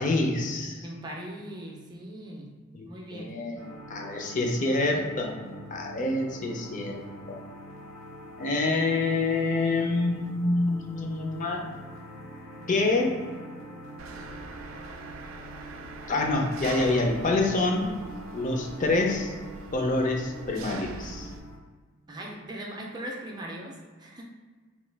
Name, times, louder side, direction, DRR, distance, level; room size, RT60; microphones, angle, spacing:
voice 1, 0.0-0.9 2.7-3.6 3.9-5.3 5.7-7.0 7.3-7.4 8.4-11.6 12.7-13.1 16.1-17.9 18.3-19.3 19.7-21.3, left 2 dB, 40° left, 1 dB, 0.5 m, -26 dB
voice 2, 0.8-2.5 2.8-3.3 22.1-24.2, right 1 dB, 20° right, -1 dB, 0.4 m, -39 dB
sound 1, 3.5-21.6, equal, 80° left, 1.1 m, -45 dB
Engine, 14.0-21.4, right 3 dB, 80° right, 0.3 m, -43 dB
3.0 x 2.2 x 3.3 m, 1.4 s
head